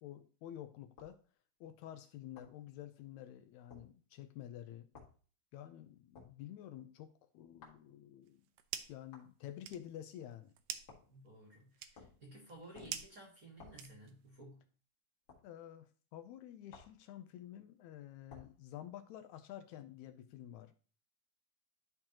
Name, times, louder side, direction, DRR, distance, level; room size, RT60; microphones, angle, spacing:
voice 1, 0.0-1.2 1.6-4.9 5.5-8.4 8.9-10.5 15.4-20.7, left 11 dB, 80° left, 10 dB, 1.8 m, -50 dB
sound 1, 1.0-1.2 2.4-2.6 3.7-3.9 4.9-5.2 6.1-6.4 7.6-7.8 9.1-9.3 10.9-11.2 11.9-12.2 12.7-13.1 13.6-13.9 15.3-15.5 16.7-17.0 18.3-18.6, left 5 dB, 45° left, 2.1 m, -56 dB
sound 2, 8.2-9.1 9.4-14.3, right 10 dB, 80° right, 1.7 m, -48 dB
voice 2, 11.1-14.6, right 1 dB, 40° right, 0 dB, 1.4 m, -55 dB
11.5 x 4.4 x 2.9 m, 0.39 s
omnidirectional pair, 3.5 m